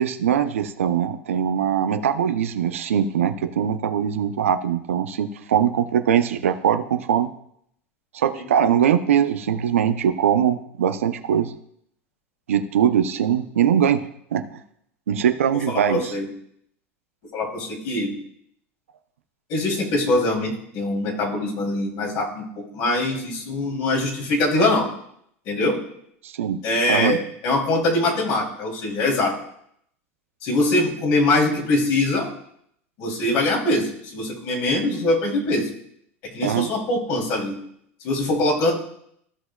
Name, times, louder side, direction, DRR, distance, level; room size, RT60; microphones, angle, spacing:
voice 1, 0.0-7.3 8.1-11.5 12.5-14.0 14.3-14.4 15.1-16.0 26.2-26.6 26.9-27.2 36.4-36.7, right 9 dB, 75° right, 9 dB, 0.6 m, -21 dB
voice 2, 15.7-16.3 17.3-18.2 19.5-24.9 25.4-25.8 26.6-29.3 30.4-32.3 33.0-35.7 36.3-37.6 38.0-38.7, left 2 dB, 55° left, -1 dB, 2.9 m, -23 dB
15.0 x 5.7 x 2.3 m, 0.71 s
hypercardioid pair, 85°, 7 cm